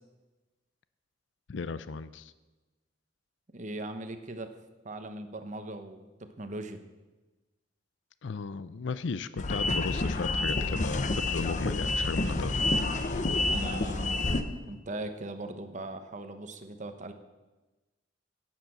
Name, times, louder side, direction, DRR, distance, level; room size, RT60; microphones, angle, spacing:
voice 1, 1.5-2.3 8.2-12.5, left 4 dB, 80° left, 15 dB, 0.5 m, -35 dB
voice 2, 3.5-4.5 4.8-6.8 13.5-17.1, right 2 dB, 40° right, 8 dB, 1.0 m, -40 dB
sound 1, 9.4-14.4, left 2 dB, 40° left, 0.8 m, -29 dB
10.5 x 7.5 x 7.7 m, 1.2 s
head